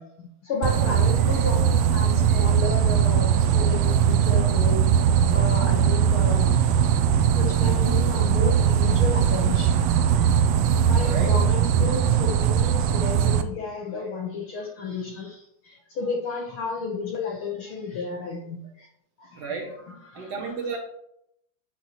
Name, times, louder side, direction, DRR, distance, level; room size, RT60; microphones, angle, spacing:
voice 1, 0.0-4.8 5.3-6.7 7.3-10.4 10.9-18.9 19.2-20.5, left 4 dB, 60° left, 1 dB, 1.6 m, -33 dB
sound 1, 0.6-13.4, right 8 dB, 75° right, 1.5 m, -20 dB
voice 2, 11.0-11.4 19.4-19.7 20.1-20.8, right 5 dB, 60° right, 0 dB, 2.6 m, -32 dB
10.5 x 7.0 x 3.0 m, 0.75 s
omnidirectional pair, 3.4 m